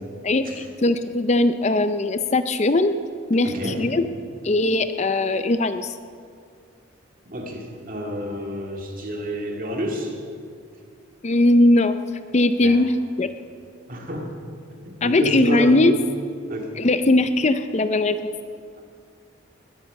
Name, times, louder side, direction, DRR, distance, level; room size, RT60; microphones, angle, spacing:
voice 1, 0.2-3.0 3.3-4.1 4.4-6.0 11.2-12.0 12.3-13.3 15.0-16.0 16.8-18.3, left 2 dB, 35° left, 10 dB, 0.5 m, -20 dB
voice 2, 3.4-4.0 7.3-10.1 12.6-12.8 13.9-14.3 14.8-15.9 16.5-16.7, equal, 40° right, 1 dB, 2.3 m, -29 dB
19.5 x 10.0 x 6.8 m, 2.2 s
head